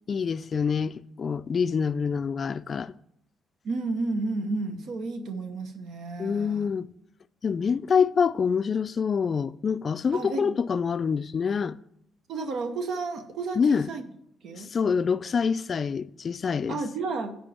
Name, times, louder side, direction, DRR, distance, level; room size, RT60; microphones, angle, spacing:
voice 1, 0.1-2.9 6.2-6.9 7.4-11.8 13.6-13.9 14.6-16.8, left 6 dB, 45° left, 0.3 m, -26 dB
voice 2, 3.6-6.7 10.1-10.6 12.3-14.0 14.4-14.7 16.7-17.3, right 3 dB, 75° right, 0.8 m, -32 dB
10.0 x 3.7 x 7.1 m
cardioid pair, 90°, 0 cm